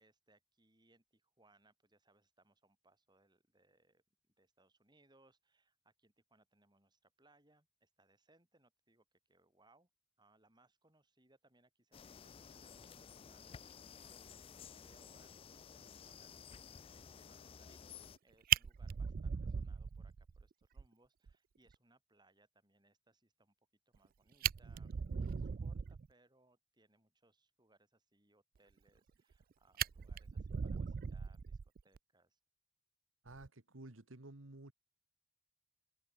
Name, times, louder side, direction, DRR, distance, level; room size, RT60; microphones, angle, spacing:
voice 1, 0.0-9.9 10.2-14.2 14.5-15.4 15.7-18.0 18.2-23.5 23.9-32.4, right 2 dB, 20° right, 7.2 m, -72 dB
sound 1, 11.9-18.2, left 7 dB, 30° left, 0.3 m, -54 dB
Fire, 18.1-18.2 18.5-20.4 20.8-20.9 21.3-21.4 21.7-21.8 23.9-24.0 24.3-26.1 28.9-29.4 29.8-32.0 33.3-33.5, right 8 dB, 45° right, 0.4 m, -38 dB
voice 2, 33.2-34.7, right 2 dB, 85° right, 1.8 m, -53 dB
head